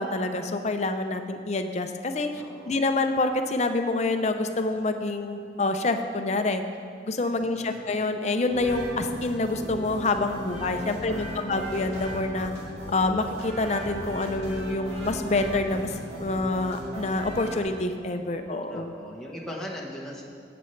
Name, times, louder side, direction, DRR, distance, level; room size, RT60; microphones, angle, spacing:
voice 1, 0.0-6.6 7.0-12.5 12.9-15.9 16.2-18.9, left 2 dB, 35° left, 7 dB, 0.5 m, -27 dB
voice 2, 2.3-2.8 7.4-7.9 11.0-11.7 18.7-20.2, equal, 5° left, -3 dB, 1.1 m, -40 dB
sound 1, 8.5-17.6, equal, 35° right, 2.1 m, -37 dB
17.0 x 6.9 x 3.2 m, 2.5 s
head